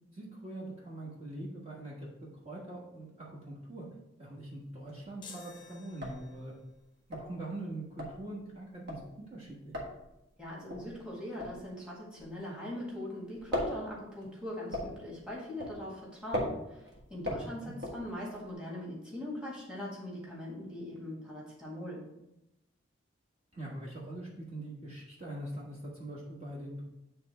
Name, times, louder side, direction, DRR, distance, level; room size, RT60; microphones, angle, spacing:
voice 1, 0.1-2.1 2.4-3.9 4.2-6.5 7.1-9.0 9.3-9.7 17.3-17.7 23.5-26.8, right 1 dB, 30° right, -5 dB, 1.2 m, -43 dB
sound 1, 4.6-5.2 5.5-5.6 5.8-12.9 13.2-18.5, left 1 dB, 55° right, 1.6 m, -39 dB
sound 2, 5.2-6.7, left 5 dB, 25° left, 0.8 m, -52 dB
voice 2, 10.4-22.0, left 1 dB, 5° right, -5 dB, 1.6 m, -41 dB
9.4 x 3.4 x 4.3 m, 0.89 s
head